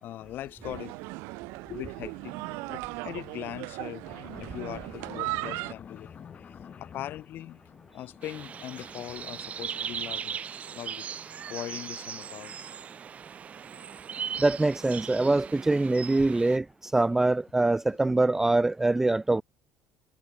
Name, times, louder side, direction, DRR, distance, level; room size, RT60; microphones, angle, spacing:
voice 1, 0.0-0.9 1.6-2.4 2.7-4.0 4.4-6.1 6.8-7.6 7.9-10.4 10.7-11.1 11.5-12.7, left 13 dB, 55° left, 4.2 m, -40 dB
sound 1, 0.6-5.7, right 26 dB, 80° right, 3.8 m, -37 dB
sound 2, 1.7-10.2 10.8-10.9 11.2-11.3 11.6-11.7 12.0-12.1 12.3-12.4 13.1-13.2 13.5-13.6 13.9-14.0 14.3-14.4 14.6-14.7, left 7 dB, 35° left, 4.9 m, -50 dB
sound 3, 8.2-16.6, right 7 dB, 35° right, 2.7 m, -38 dB
voice 2, 14.4-19.4, right 2 dB, 10° right, 0.3 m, -24 dB
cardioid pair, 135°, 4 cm